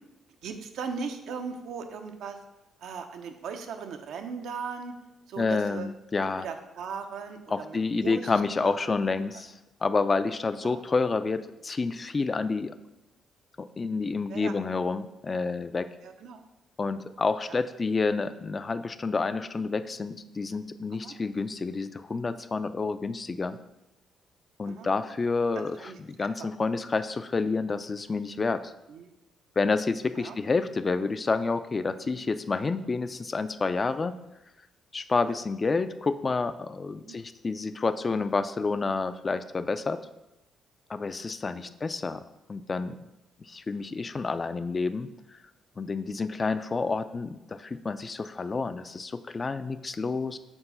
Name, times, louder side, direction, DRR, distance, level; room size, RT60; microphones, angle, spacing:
voice 1, 0.4-2.4 2.8-4.9 5.3-5.9 6.4-8.3 8.6-9.0 10.6-10.8 14.3-14.5 16.0-16.4 17.5-17.6 20.9-21.2 24.6-24.9 25.5-26.5 28.9-29.1 30.2-30.4 32.1-32.2 33.7-33.9 35.3-35.4 37.0-37.2 41.5-41.7 46.8-46.9 48.5-48.7, right 5 dB, 80° right, 6 dB, 0.6 m, -39 dB
voice 2, 5.4-6.5 7.5-9.5 9.8-12.7 13.6-15.9 16.8-23.6 24.6-28.7 29.6-34.1 34.9-40.0 40.9-42.2 42.5-43.0 43.5-45.4 45.8-50.4, left 4 dB, 30° left, 12 dB, 0.3 m, -29 dB
4.4 x 3.9 x 5.5 m, 0.95 s
cardioid pair, 90°, 0 cm